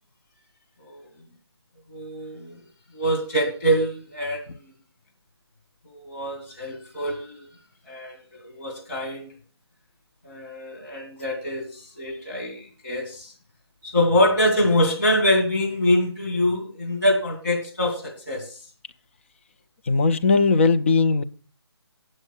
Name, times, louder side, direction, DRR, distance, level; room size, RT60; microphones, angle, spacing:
voice 1, 1.9-2.6 2.9-4.4 5.9-7.5 7.9-9.3 10.2-13.3 13.8-18.6, left 1 dB, 45° left, 2.7 m, -24 dB
voice 2, 19.9-21.2, left 4 dB, 30° left, 0.4 m, -19 dB
8.8 x 6.3 x 6.5 m
figure-of-eight pair, 150°, 14 cm